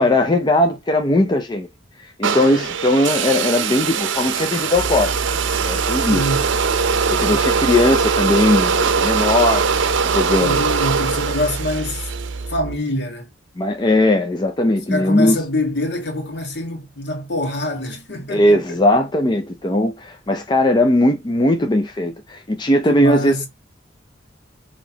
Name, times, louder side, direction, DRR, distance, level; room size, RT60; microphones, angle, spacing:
voice 1, 0.0-1.7 2.0-5.1 5.6-6.2 7.1-10.6 13.6-15.4 18.3-23.4, left 1 dB, 25° left, 0.5 m, -18 dB
sound 1, 2.2-12.4, right 6 dB, 80° right, 0.6 m, -21 dB
sound 2, 4.7-12.8, right 3 dB, 50° right, 0.9 m, -29 dB
voice 2, 6.0-6.5 7.3-7.8 10.4-12.1 12.5-13.3 14.9-18.8 22.9-23.5, left 1 dB, 65° left, 1.6 m, -25 dB
5.9 x 3.0 x 2.8 m
head